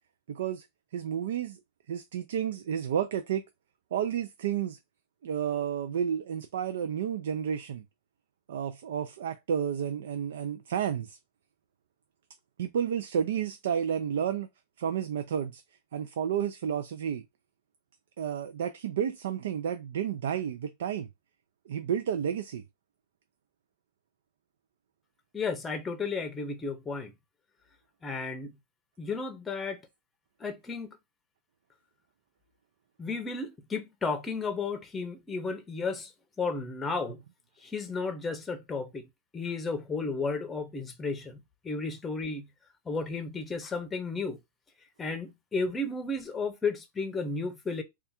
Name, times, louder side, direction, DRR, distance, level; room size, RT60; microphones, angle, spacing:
voice 1, 0.3-0.7 0.9-1.6 1.9-3.4 3.9-4.8 5.2-7.8 8.5-11.2 12.6-14.5 14.8-15.6 15.9-17.2 18.2-21.1 21.7-22.6, right 8 dB, 80° right, 0.4 m, -31 dB
voice 2, 25.3-27.1 28.0-28.5 29.0-29.8 30.4-31.0 33.0-36.1 36.4-37.2 37.6-39.1 39.3-42.5 42.9-44.4 45.0-47.8, left 4 dB, 10° left, 0.7 m, -33 dB
3.4 x 2.4 x 4.3 m
supercardioid pair, 155°, 0 cm